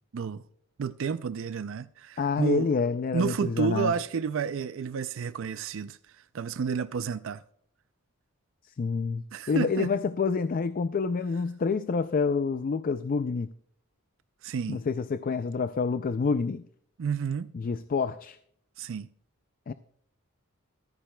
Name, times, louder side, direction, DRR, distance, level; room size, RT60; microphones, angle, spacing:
voice 1, 0.1-0.4 0.8-2.7 3.1-6.0 6.3-7.4 9.3-9.9 14.4-14.8 17.0-17.5 18.8-19.1, right 6 dB, 60° right, 0.4 m, -30 dB
voice 2, 2.2-3.9 8.8-13.5 14.7-16.6 17.5-18.4 19.7-19.8, left 5 dB, 40° left, 0.3 m, -28 dB
14.5 x 13.0 x 2.2 m
head